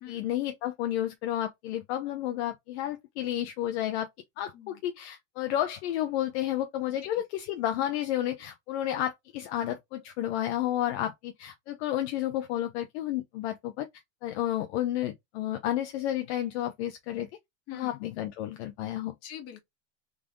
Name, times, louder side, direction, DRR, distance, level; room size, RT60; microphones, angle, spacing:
voice 1, 0.1-4.1 4.4-13.9 14.2-17.3 17.7-19.1, left 12 dB, 60° left, 0.8 m, -31 dB
voice 2, 17.7-18.0 19.2-19.6, left 12 dB, 40° left, 1.5 m, -43 dB
3.6 x 3.4 x 3.8 m
supercardioid pair, 145°, 37 cm